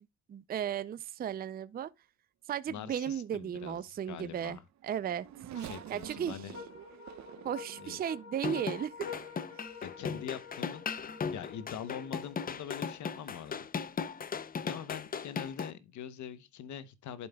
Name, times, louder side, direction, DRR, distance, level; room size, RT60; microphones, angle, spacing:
voice 1, 0.3-1.9 2.5-5.3 5.9-6.4 7.4-8.9, right 9 dB, 30° right, 0.4 m, -35 dB
voice 2, 2.7-4.6 5.6-6.5 7.8-8.0 9.8-10.8 11.3-13.6 14.6-17.3, left 9 dB, 70° left, 0.9 m, -43 dB
Race car auto racing / Accelerating revving vroom, 4.6-9.0 9.7-9.8 10.9-11.1, right 11 dB, 65° right, 0.8 m, -47 dB
sound 1, 5.5-13.1, left 6 dB, 50° left, 2.8 m, -49 dB
sound 2, 8.3-15.7, left 6 dB, 30° left, 0.5 m, -37 dB
11.0 x 5.3 x 2.2 m
cardioid pair, 90°, 30 cm